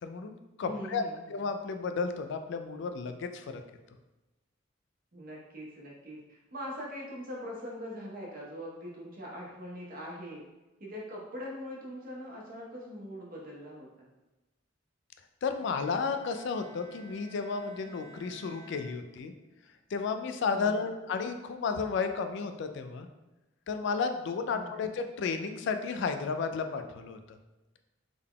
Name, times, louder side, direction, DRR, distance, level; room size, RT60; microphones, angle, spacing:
voice 1, 0.0-1.0 1.3-3.6 15.4-19.3 19.9-23.1 23.7-27.2, left 5 dB, 65° left, 7 dB, 0.3 m, -33 dB
voice 2, 0.6-1.4 5.1-10.4 10.8-14.1 20.5-20.9 24.5-24.9, equal, 50° right, -4 dB, 0.9 m, -42 dB
Bowed string instrument, 15.5-19.6, right 4 dB, 10° left, 0.9 m, -53 dB
3.7 x 3.5 x 2.2 m, 1.1 s
head